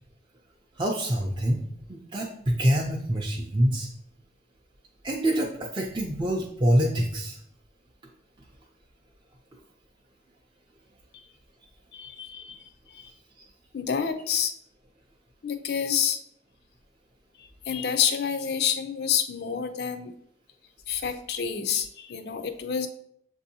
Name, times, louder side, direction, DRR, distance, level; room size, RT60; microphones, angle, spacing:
voice 1, 0.8-1.6 1.9-3.9 5.0-7.4, equal, 25° right, -2 dB, 0.4 m, -25 dB
voice 2, 11.9-13.1 13.7-14.5 15.4-16.2 17.4-20.1 20.9-22.9, left 7 dB, 60° left, 8 dB, 0.4 m, -28 dB
7.2 x 2.7 x 2.7 m, 0.69 s
head